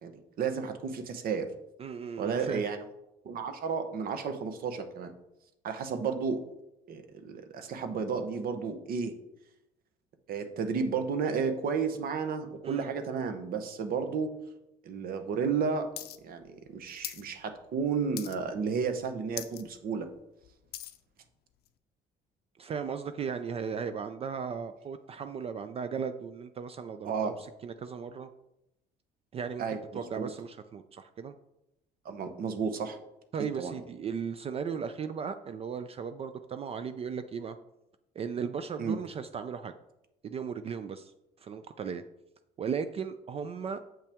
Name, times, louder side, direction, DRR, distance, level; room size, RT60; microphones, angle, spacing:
voice 1, 0.0-1.5 2.2-2.8 3.2-5.1 5.6-6.5 6.9-9.1 10.3-14.3 14.8-15.9 16.2-20.1 27.0-27.3 29.6-29.8 30.2-30.3 32.0-33.0 33.4-33.7 38.8-39.0, right 5 dB, 60° right, 8 dB, 0.9 m, -32 dB
voice 2, 1.8-2.6 12.6-12.9 22.6-28.3 29.3-31.3 33.3-37.6 38.2-39.7 40.2-41.1 41.4-42.0 42.6-43.8, right 6 dB, 35° right, 10 dB, 0.4 m, -36 dB
sound 1, 16.0-16.2 16.4-17.3 17.6-17.8 18.2-18.6 19.0-19.1 19.3-19.6 20.1-21.0 21.7-21.8, left 13 dB, 70° left, 0.5 m, -40 dB
7.3 x 5.6 x 3.5 m, 0.88 s
cardioid pair, 110°, 17 cm